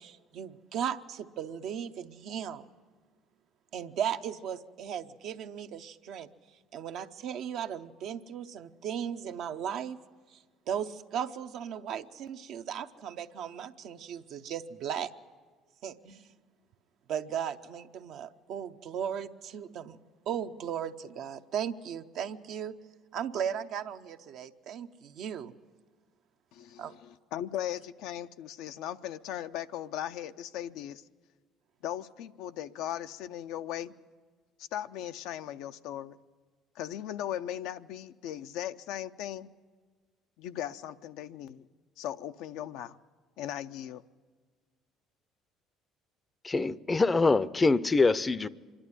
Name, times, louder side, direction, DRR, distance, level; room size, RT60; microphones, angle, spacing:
voice 1, 0.0-2.6 3.7-6.3 6.7-10.0 10.3-10.4 10.7-15.1 15.8-16.3 17.1-20.0 20.3-22.8 23.1-25.5 26.8-26.9, right 8 dB, 65° right, 0.7 m, -36 dB
voice 2, 26.5-31.0 31.8-33.9 34.7-36.2 36.8-39.5 40.4-41.7 42.0-43.0 43.4-44.0, left 11 dB, 75° left, 0.5 m, -38 dB
voice 3, 46.4-48.5, left 3 dB, 25° left, 0.5 m, -24 dB
25.5 x 11.5 x 9.7 m
supercardioid pair, 75°, 0 cm